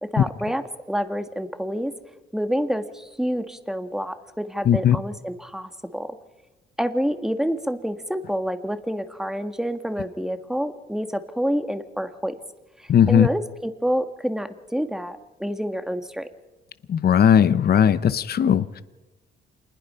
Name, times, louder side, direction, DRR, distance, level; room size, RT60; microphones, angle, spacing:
voice 1, 0.0-1.9 2.3-6.2 6.8-12.3 12.8-16.3, equal, ahead, 8 dB, 1.7 m, -28 dB
voice 2, 4.7-5.0 12.9-13.3 16.9-18.8, left 8 dB, 50° left, 14 dB, 0.9 m, -17 dB
27.0 x 20.5 x 5.7 m, 1.2 s
cardioid pair, 90°, 20 cm